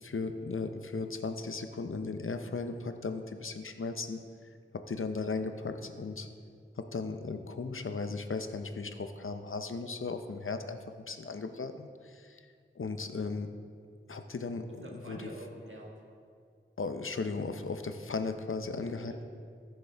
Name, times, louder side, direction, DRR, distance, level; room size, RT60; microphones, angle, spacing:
voice 1, 0.0-4.2 4.7-6.3 6.8-10.8 11.1-12.4 12.8-13.5 14.1-15.2 16.8-19.2, left 4 dB, 85° left, 7 dB, 0.6 m, -36 dB
voice 2, 14.7-16.0 18.7-19.2, right 1 dB, 70° right, -2 dB, 1.8 m, -46 dB
15.0 x 6.6 x 3.4 m, 2.2 s
wide cardioid pair, 45°, 21 cm